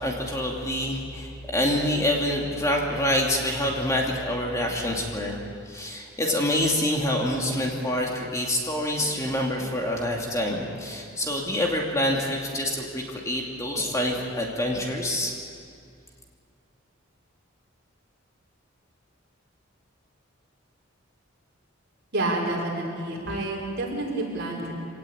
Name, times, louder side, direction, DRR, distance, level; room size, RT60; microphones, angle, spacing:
voice 1, 0.0-5.4 5.7-15.3, left 1 dB, 15° left, -1 dB, 2.6 m, -26 dB
voice 2, 22.1-24.7, right 2 dB, 55° right, -2 dB, 6.3 m, -29 dB
25.5 x 18.5 x 8.8 m, 2.3 s
head